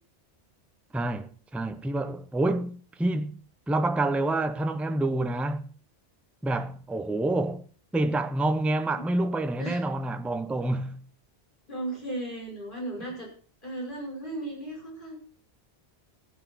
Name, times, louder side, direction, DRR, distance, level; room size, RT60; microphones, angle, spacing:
voice 1, 0.9-3.4 3.7-5.7 6.4-7.7 7.9-11.1, right 2 dB, ahead, 0.6 m, -28 dB
voice 2, 11.7-13.3 13.6-15.2, right 1 dB, 50° left, 5.8 m, -35 dB
14.5 x 9.5 x 6.1 m
omnidirectional pair, 1.1 m